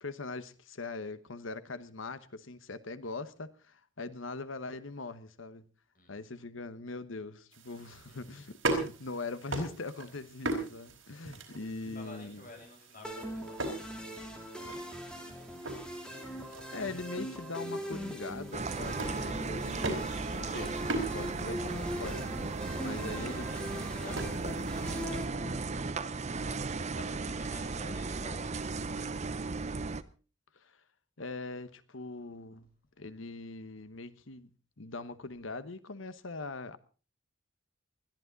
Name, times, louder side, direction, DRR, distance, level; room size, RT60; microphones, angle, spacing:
voice 1, 0.0-5.6 6.1-12.4 16.7-20.8 21.1-23.5 30.5-30.8 31.2-32.7 33.0-34.5 34.8-36.8, left 3 dB, 75° left, 1.2 m, -41 dB
voice 2, 5.9-6.3 7.9-8.4 11.6-15.6 22.9-29.5, left 2 dB, 45° left, 7.3 m, -52 dB
sound 1, 7.5-25.1, right 2 dB, 80° right, 4.6 m, -41 dB
sound 2, 13.0-26.1, equal, 5° left, 3.4 m, -41 dB
sound 3, 18.5-30.0, right 3 dB, 35° right, 0.8 m, -36 dB
21.0 x 14.0 x 4.0 m
head